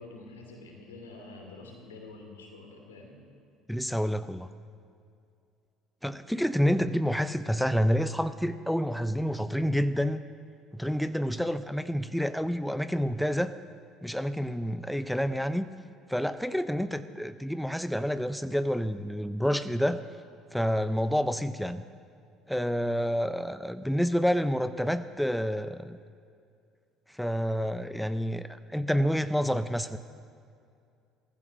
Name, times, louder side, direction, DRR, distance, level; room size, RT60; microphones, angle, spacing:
voice 1, 0.0-3.2, left 2 dB, 85° left, 2 dB, 2.6 m, -47 dB
voice 2, 3.7-4.5 6.0-10.2 10.7-13.5 14.0-15.7 16.1-20.0 20.5-21.8 22.5-26.0 27.1-30.0, equal, ahead, 12 dB, 0.6 m, -28 dB
15.0 x 14.5 x 6.3 m, 2.4 s
hypercardioid pair, 60°, 0 cm